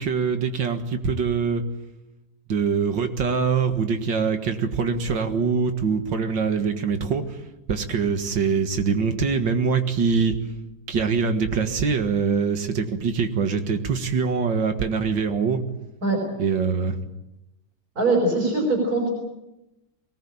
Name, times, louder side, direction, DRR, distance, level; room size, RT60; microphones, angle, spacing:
voice 1, 0.0-1.6 2.5-7.2 7.7-10.4 10.9-15.6 16.4-17.0, right 5 dB, 90° right, 7 dB, 2.4 m, -23 dB
voice 2, 18.0-19.1, right 2 dB, 50° right, 0 dB, 5.7 m, -22 dB
22.5 x 19.0 x 8.7 m, 0.96 s
omnidirectional pair, 2.0 m